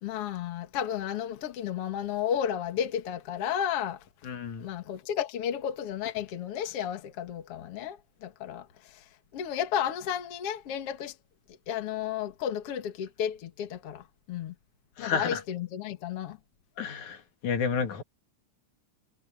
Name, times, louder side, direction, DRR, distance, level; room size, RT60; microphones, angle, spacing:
voice 1, 0.0-4.0 4.6-8.7 9.3-11.1 11.7-14.0 14.3-14.5 15.0-16.4, left 9 dB, 50° left, 2.4 m, -32 dB
voice 2, 4.2-4.6 15.0-15.4 16.8-17.2 17.4-18.0, left 6 dB, 70° left, 3.1 m, -30 dB
omnidirectional pair, 3.6 m